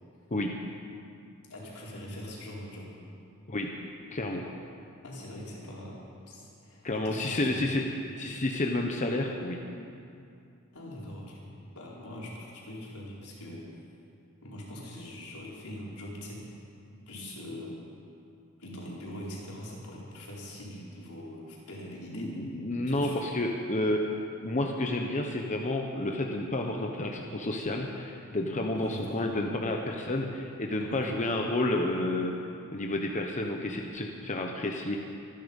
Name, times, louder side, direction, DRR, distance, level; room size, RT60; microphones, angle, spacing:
voice 1, 0.3-0.6 3.5-3.8 4.1-4.5 6.8-7.9 8.2-9.6 22.1-24.1 24.4-32.3 32.7-35.0, left 1 dB, 35° left, 1 dB, 1.0 m, -30 dB
voice 2, 1.5-2.9 5.0-7.6 10.7-11.5 11.7-13.7 14.4-16.4 16.9-17.8 18.6-22.3 22.9-23.2 28.7-29.2 30.8-31.4, left 1 dB, 85° left, -5 dB, 4.4 m, -42 dB
25.0 x 10.5 x 5.4 m, 2.5 s
head